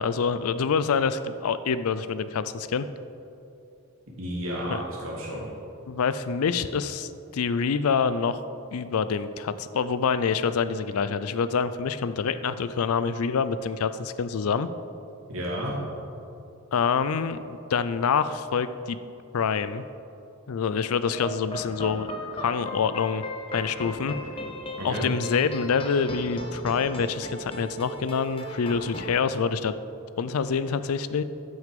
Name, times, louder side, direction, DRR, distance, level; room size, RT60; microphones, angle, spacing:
voice 1, 0.0-2.9 4.7-4.8 5.9-8.4 8.7-14.7 16.7-19.0 19.3-19.8 20.5-23.2 23.5-24.1 24.8-29.7 30.2-31.2, left 6 dB, 80° left, 13 dB, 0.4 m, -26 dB
voice 2, 4.2-5.5 15.3-15.8 24.8-25.1, equal, 70° right, -4 dB, 2.6 m, -31 dB
sound 1, 21.1-29.1, equal, 25° left, 0.9 m, -37 dB
12.5 x 6.5 x 5.2 m, 2.7 s
head